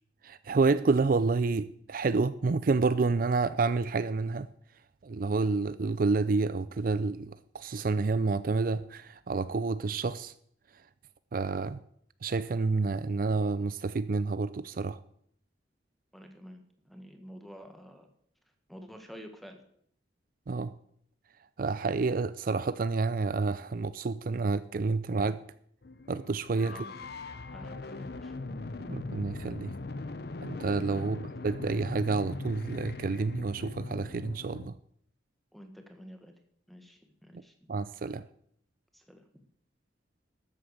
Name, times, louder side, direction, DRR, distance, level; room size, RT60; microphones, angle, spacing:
voice 1, 0.2-4.5 5.0-10.3 11.3-11.8 12.2-15.0 20.5-20.7 21.6-25.4 26.1-26.9 28.9-29.7 30.4-34.7 37.7-38.2, right 4 dB, 50° right, 0.5 m, -29 dB
voice 2, 16.1-18.1 18.7-19.6 26.6-27.1 27.5-28.3 31.0-31.2 35.5-36.3 36.7-37.7 38.9-39.2, equal, ahead, 1.6 m, -49 dB
sound 1, 25.8-34.7, left 3 dB, 60° left, 0.7 m, -40 dB
13.0 x 8.1 x 6.6 m
head